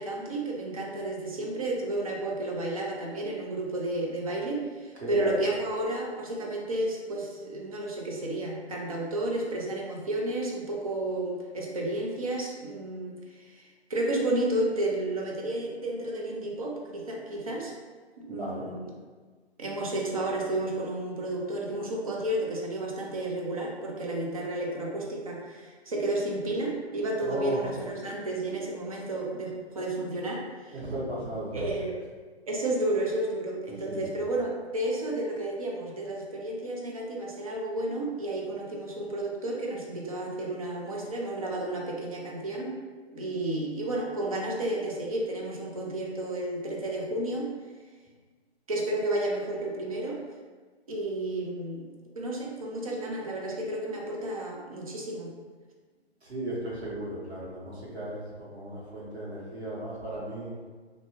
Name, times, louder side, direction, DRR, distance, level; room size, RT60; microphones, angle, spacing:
voice 1, 0.0-13.6 13.9-17.7 18.3-18.8 19.6-30.8 31.5-32.0 32.5-42.8 43.1-47.5 48.7-50.2 50.9-51.9 52.2-55.3, right 1 dB, 35° right, -2 dB, 0.4 m, -32 dB
voice 2, 5.0-5.3 18.3-18.7 27.2-27.6 30.7-31.6 33.9-34.1 56.3-60.5, right 1 dB, 75° right, -7 dB, 1.3 m, -35 dB
2.6 x 2.2 x 2.9 m, 1.4 s
figure-of-eight pair, 135°, 33 cm